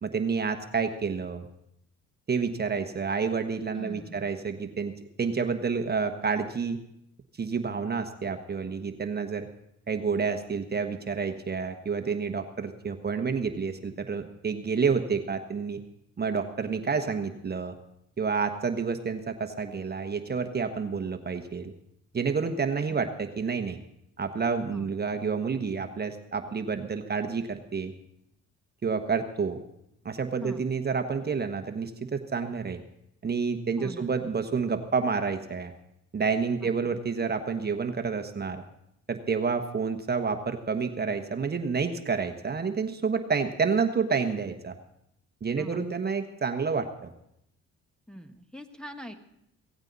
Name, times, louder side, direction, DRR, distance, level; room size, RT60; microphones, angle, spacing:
voice 1, 0.0-1.5 2.3-4.9 5.2-6.8 7.4-9.5 9.9-15.8 16.2-17.8 18.2-21.7 22.1-23.8 24.2-27.9 28.8-29.6 30.0-32.8 33.2-35.7 36.1-38.6 39.1-44.8 45.4-47.1, right 5 dB, 30° right, 6 dB, 1.2 m, -29 dB
voice 2, 3.7-4.2 22.9-23.0 24.7-24.9 30.4-30.7 33.8-34.1 36.6-36.9 45.6-45.8 48.1-49.1, equal, 5° left, 2 dB, 1.3 m, -43 dB
17.0 x 15.5 x 4.0 m, 0.78 s
cardioid pair, 90°, 30 cm